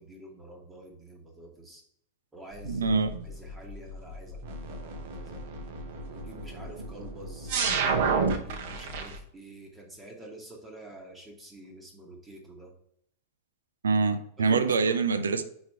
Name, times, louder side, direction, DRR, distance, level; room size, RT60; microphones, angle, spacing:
voice 1, 0.0-1.8 2.3-5.4 6.0-7.6 8.2-12.7 14.4-15.0, right 2 dB, 15° right, 1.3 m, -47 dB
sound 1, 2.6-9.2, right 4 dB, 50° right, 0.8 m, -32 dB
voice 2, 2.6-3.3 8.2-8.3 13.8-15.4, right 4 dB, 70° right, 0.5 m, -25 dB
5.0 x 4.5 x 4.4 m
figure-of-eight pair, 90°, 0 cm